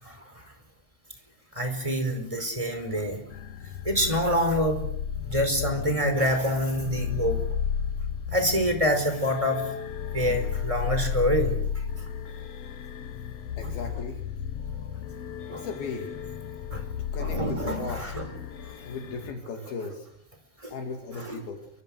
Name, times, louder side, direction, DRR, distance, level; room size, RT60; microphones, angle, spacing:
voice 1, 0.0-0.5 1.5-3.2 3.8-4.9 5.2-7.4 8.3-9.7 10.1-11.8 15.5-15.7 16.7-16.9 17.2-18.3 20.6-20.7 21.1-21.4, equal, 10° right, 6 dB, 4.5 m, -26 dB
sound 1, 3.3-19.3, left 7 dB, 85° left, 1.3 m, -33 dB
voice 2, 13.6-14.2 15.5-16.1 17.1-18.1 18.9-20.1 20.7-21.6, left 4 dB, 70° left, 2 dB, 4.3 m, -36 dB
29.5 x 25.5 x 6.5 m, 0.71 s
omnidirectional pair, 4.6 m